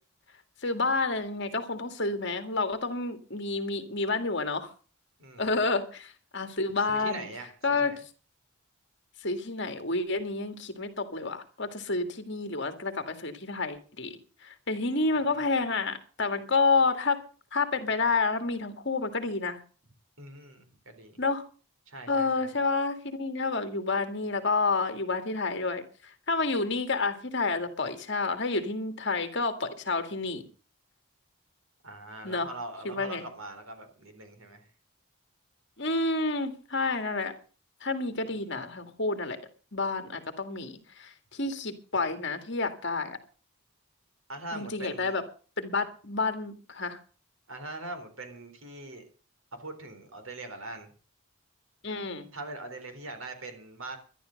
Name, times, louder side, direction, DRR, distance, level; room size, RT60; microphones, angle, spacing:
voice 1, 0.6-4.7 5.4-7.3 7.6-7.9 9.2-14.2 14.4-17.2 17.5-19.6 21.2-21.4 22.1-30.4 32.2-32.5 32.8-33.2 35.8-37.3 37.8-39.4 39.7-43.2 44.5-45.2 45.6-47.0 51.8-52.3, left 3 dB, 55° left, 8 dB, 2.1 m, -29 dB
voice 2, 5.2-5.5 6.9-8.0 15.3-15.5 20.2-21.2 21.9-22.5 31.8-34.7 44.3-45.2 47.5-49.0 49.5-50.9 52.3-54.0, right 2 dB, 75° right, 7 dB, 3.9 m, -42 dB
12.5 x 11.5 x 6.5 m, 0.39 s
head